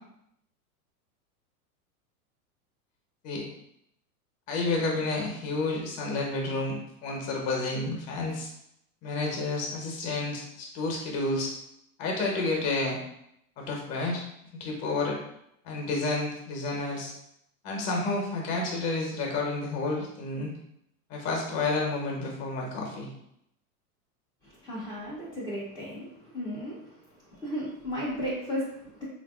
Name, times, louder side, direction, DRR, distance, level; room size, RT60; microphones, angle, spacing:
voice 1, 4.5-8.5 9.0-11.5 12.0-13.0 13.6-14.2 14.6-15.2 15.6-17.1 17.6-20.5 21.1-23.1, left 2 dB, 35° left, 0 dB, 0.8 m, -30 dB
voice 2, 24.4-29.0, equal, 10° left, -10 dB, 0.5 m, -35 dB
3.4 x 2.6 x 2.3 m, 0.77 s
hypercardioid pair, 130°, 46 cm